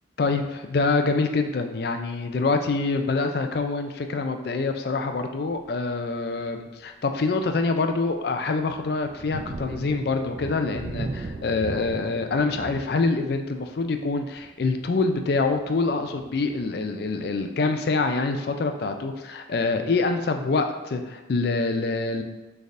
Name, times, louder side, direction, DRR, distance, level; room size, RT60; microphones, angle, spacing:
voice 1, 0.2-22.2, left 3 dB, 55° left, 6 dB, 0.4 m, -25 dB
Thunder, 5.5-5.8 6.4-6.5 7.0-17.5, right 3 dB, 35° right, 0.3 m, -40 dB
6.3 x 3.4 x 2.5 m, 1.1 s
head